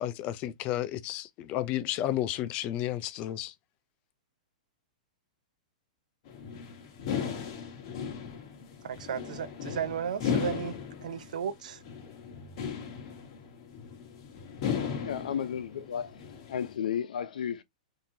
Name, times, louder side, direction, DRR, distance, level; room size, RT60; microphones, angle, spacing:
voice 1, 0.0-3.5, left 13 dB, 30° left, 0.4 m, -32 dB
sound 1, 6.3-16.8, left 7 dB, 45° left, 1.2 m, -36 dB
voice 2, 8.8-10.7 11.0-11.8, right 8 dB, 75° right, 0.7 m, -34 dB
voice 3, 15.0-16.2 16.5-17.6, left 8 dB, 85° left, 0.7 m, -33 dB
3.8 x 2.8 x 2.7 m
hypercardioid pair, 160°, 4 cm